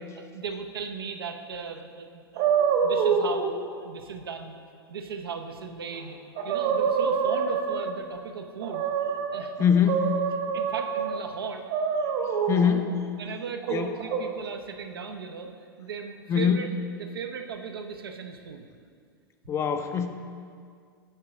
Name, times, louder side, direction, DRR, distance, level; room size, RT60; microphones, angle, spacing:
voice 1, 0.2-2.2 2.8-4.6 4.9-6.2 6.4-9.5 10.5-11.7 13.2-18.7, right 6 dB, 70° right, 5 dB, 0.6 m, -37 dB
sound 1, 2.4-3.5 5.9-6.0 6.4-8.1 8.6-9.4 9.9-11.2 11.7-12.8 13.6-14.2, right 6 dB, 50° right, 1.2 m, -26 dB
voice 2, 9.6-10.1 12.5-13.0 13.7-13.9 16.3-16.6 19.5-20.1, left 7 dB, 20° left, 7 dB, 0.5 m, -23 dB
9.0 x 3.7 x 5.9 m, 2.2 s
figure-of-eight pair, 95°, 13 cm